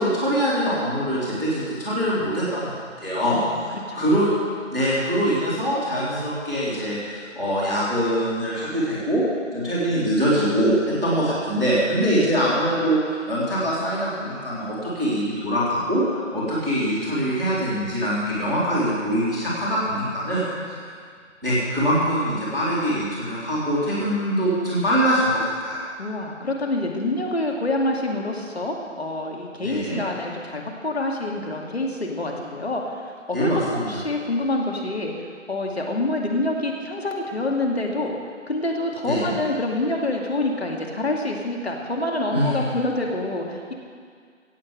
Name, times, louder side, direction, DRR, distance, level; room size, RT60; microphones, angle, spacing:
voice 1, 0.0-4.3 4.7-9.2 9.5-20.8 21.4-25.8 29.6-30.0 33.3-33.9 39.0-39.3 42.3-42.6, equal, ahead, -21 dB, 1.8 m, -23 dB
voice 2, 3.3-4.1 20.5-20.7 26.0-38.1 38.5-43.7, left 2 dB, 55° left, 0 dB, 2.3 m, -27 dB
17.0 x 7.6 x 7.6 m, 2.1 s
figure-of-eight pair, 165°, 38 cm